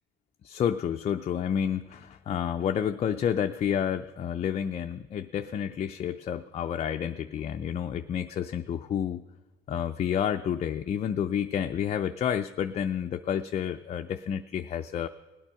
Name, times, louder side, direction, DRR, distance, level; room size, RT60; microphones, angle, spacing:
voice 1, 0.4-9.2 9.7-15.1, left 8 dB, 40° left, 6 dB, 0.5 m, -30 dB
18.0 x 8.9 x 5.7 m, 1.2 s
cardioid pair, 110°, 17 cm